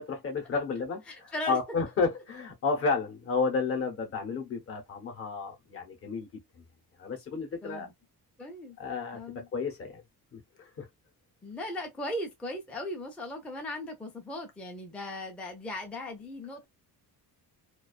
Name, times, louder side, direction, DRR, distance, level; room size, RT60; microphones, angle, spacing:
voice 1, 0.0-6.4 7.0-7.9 8.8-10.0 10.3-10.9, left 4 dB, 35° left, 0.7 m, -32 dB
voice 2, 1.1-1.6 7.6-7.9 8.4-8.8 9.1-9.5 11.4-16.7, left 1 dB, 5° left, 0.3 m, -38 dB
2.3 x 2.3 x 2.3 m
cardioid pair, 175°, 38 cm